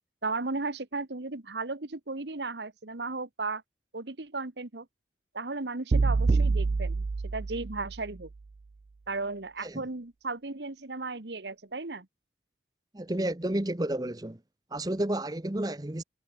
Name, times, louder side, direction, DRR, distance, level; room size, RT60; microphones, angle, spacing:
voice 1, 0.2-3.6 3.9-4.9 5.3-8.3 9.1-12.1, right 3 dB, 75° right, 1.5 m, -35 dB
sound 1, 5.9-8.1, right 3 dB, 40° right, 0.3 m, -26 dB
voice 2, 12.9-14.4 14.7-16.0, right 1 dB, 20° right, 0.8 m, -31 dB
head